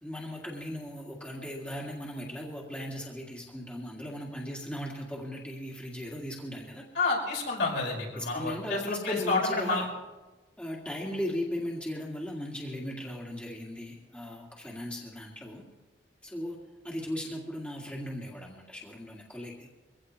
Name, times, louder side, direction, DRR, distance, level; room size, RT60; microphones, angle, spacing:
voice 1, 0.0-6.8 8.2-9.8 10.6-15.6 16.2-16.6 16.8-19.7, equal, 5° left, -3 dB, 2.1 m, -37 dB
voice 2, 6.9-9.8, left 3 dB, 75° left, -3 dB, 5.6 m, -29 dB
23.5 x 16.5 x 3.2 m, 1.2 s
head